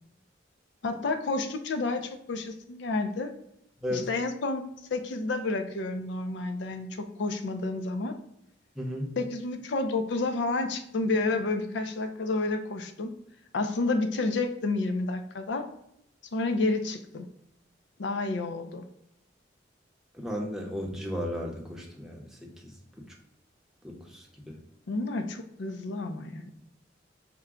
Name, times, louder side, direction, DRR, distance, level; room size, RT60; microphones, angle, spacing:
voice 1, 0.8-3.3 3.9-4.6 4.9-8.1 9.2-13.1 13.5-15.7 16.3-17.3 18.0-18.8 24.9-26.4, left 3 dB, 70° left, 7 dB, 0.5 m, -30 dB
voice 2, 8.8-9.1 20.1-22.7 23.8-24.5, equal, 5° right, -1 dB, 0.7 m, -35 dB
5.8 x 2.2 x 3.6 m, 0.79 s
head